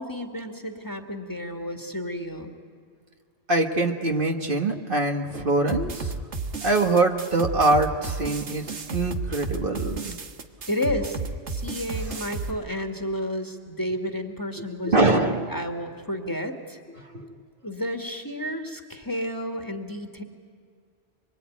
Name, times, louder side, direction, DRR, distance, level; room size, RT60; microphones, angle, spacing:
voice 1, 0.0-2.5 10.7-11.2 11.5-16.8 17.6-20.2, left 1 dB, 15° left, 4 dB, 2.0 m, -31 dB
voice 2, 3.5-6.2 6.6-10.2 14.8-15.5 17.1-17.3, right 2 dB, 50° right, 3 dB, 1.7 m, -23 dB
sound 1, 5.7-12.5, right 3 dB, 80° right, 1.7 m, -33 dB
25.5 x 24.0 x 9.4 m, 2.2 s
omnidirectional pair, 1.2 m